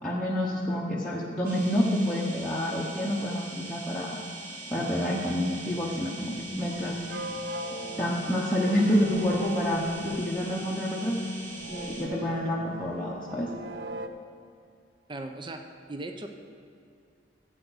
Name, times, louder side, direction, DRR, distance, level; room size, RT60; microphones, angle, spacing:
voice 1, 0.0-4.2 4.7-7.0 8.0-11.2 11.7-13.5, equal, 5° left, -6 dB, 0.9 m, -28 dB
sound 1, 1.4-12.1, right 2 dB, 50° right, 2.0 m, -42 dB
sound 2, 5.5-14.1, right 1 dB, 65° right, 0.6 m, -40 dB
voice 2, 15.1-15.6 15.9-16.3, right 2 dB, 25° right, 5 dB, 0.6 m, -37 dB
15.0 x 7.9 x 4.0 m, 2.4 s
head